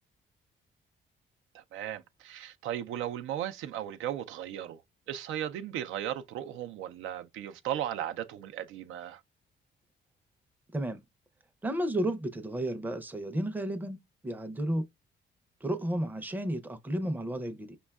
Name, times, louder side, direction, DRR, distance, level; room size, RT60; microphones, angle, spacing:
voice 1, 1.5-4.8 5.1-9.2, right 11 dB, 90° right, 0.5 m, -36 dB
voice 2, 11.6-14.0 14.2-14.9 15.6-17.8, right 1 dB, 10° right, 0.5 m, -32 dB
5.2 x 2.2 x 2.2 m
cardioid pair, 90°, 20 cm